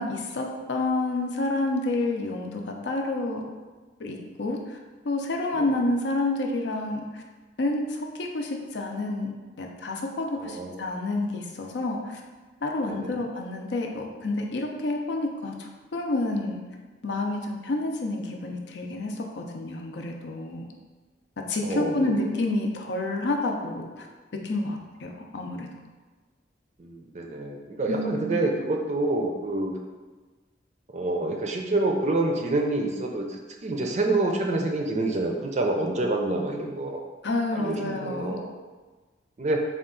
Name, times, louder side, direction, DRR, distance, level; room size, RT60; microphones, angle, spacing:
voice 1, 0.0-3.5 4.0-4.8 5.0-7.2 7.6-12.2 12.6-16.6 17.0-20.7 21.5-24.1 24.3-25.7 27.9-28.4 37.2-38.4, left 2 dB, 75° left, 2 dB, 0.5 m, -29 dB
voice 2, 10.4-10.9 12.9-13.2 21.6-22.1 26.8-29.8 30.9-37.0 37.5-38.5 39.4-39.6, right 2 dB, 40° right, 1 dB, 0.4 m, -27 dB
4.3 x 2.3 x 3.7 m, 1.3 s
head